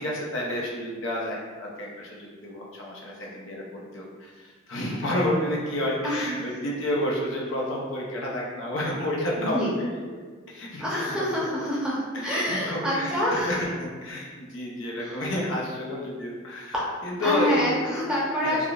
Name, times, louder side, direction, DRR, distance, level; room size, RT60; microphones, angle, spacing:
voice 1, 0.0-10.2 10.5-11.5 12.1-16.7 17.0-17.7 18.4-18.7, left 1 dB, 70° left, -3 dB, 0.6 m, -30 dB
voice 2, 6.0-6.4 9.4-9.7 10.8-13.5 15.0-15.1 17.2-18.7, equal, 5° right, -8 dB, 0.6 m, -27 dB
3.4 x 2.3 x 2.3 m, 1.5 s
head